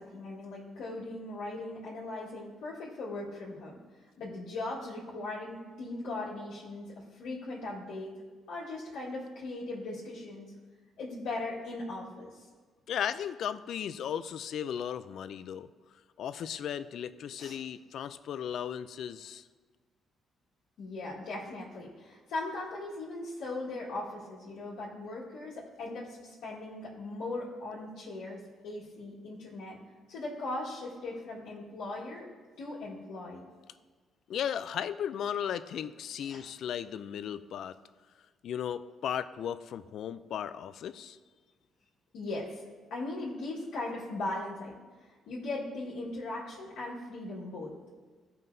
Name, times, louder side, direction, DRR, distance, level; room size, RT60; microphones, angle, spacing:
voice 1, 0.0-3.7 4.2-8.1 8.5-10.5 11.0-12.4 17.4-17.6 20.8-29.8 30.1-32.3 32.6-33.5 36.2-36.4 42.1-42.6 42.9-44.7 45.1-47.7, left 2 dB, 85° left, -7 dB, 1.7 m, -39 dB
voice 2, 12.9-15.7 16.2-19.4 34.3-37.8 38.4-41.2, left 9 dB, 70° left, 13 dB, 0.3 m, -36 dB
13.5 x 5.5 x 2.7 m, 1.4 s
cardioid pair, 90°, 0 cm